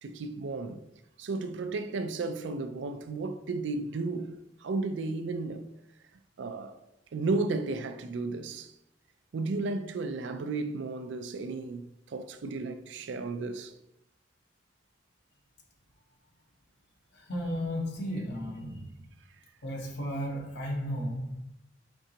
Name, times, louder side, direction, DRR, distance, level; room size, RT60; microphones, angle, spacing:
voice 1, 0.0-0.8 1.2-5.7 6.4-6.7 7.1-8.7 9.3-13.7, right 3 dB, 70° right, 0.4 m, -33 dB
voice 2, 17.1-19.1 19.6-21.4, equal, 65° left, 0.9 m, -34 dB
4.5 x 3.7 x 2.8 m
head